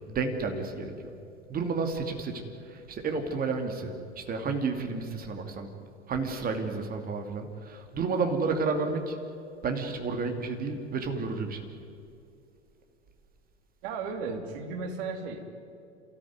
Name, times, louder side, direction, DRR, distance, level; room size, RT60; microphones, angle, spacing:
voice 1, 0.1-1.1 1.5-5.7 6.1-9.2 9.6-11.7, right 4 dB, 25° right, 5 dB, 2.6 m, -31 dB
voice 2, 13.8-15.4, right 4 dB, 50° right, 5 dB, 3.2 m, -35 dB
29.5 x 14.0 x 9.6 m, 2.6 s
figure-of-eight pair, 90°, 35 cm